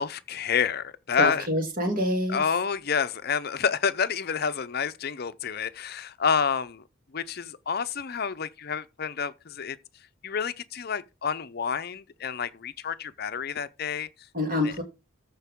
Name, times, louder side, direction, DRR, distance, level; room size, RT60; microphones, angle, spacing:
voice 1, 0.0-1.5 2.3-6.8 7.1-9.8 10.2-14.1 14.6-14.7, left 6 dB, 50° left, 0.6 m, -29 dB
voice 2, 1.2-2.4 14.3-14.8, left 1 dB, 45° right, 2.6 m, -26 dB
14.0 x 4.7 x 3.6 m
head